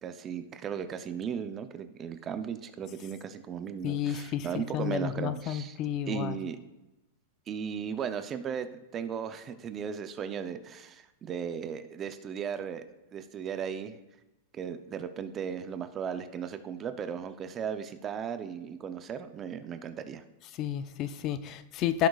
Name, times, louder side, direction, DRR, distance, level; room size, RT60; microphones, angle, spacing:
voice 1, 0.0-5.8 6.1-6.6 7.5-12.8 13.1-14.0 14.5-20.2, right 7 dB, 25° right, 10 dB, 0.5 m, -36 dB
voice 2, 3.8-4.5 4.7-6.3 20.6-22.1, left 10 dB, 35° left, 13 dB, 0.4 m, -31 dB
16.0 x 6.3 x 2.4 m, 0.97 s
supercardioid pair, 150°, 0 cm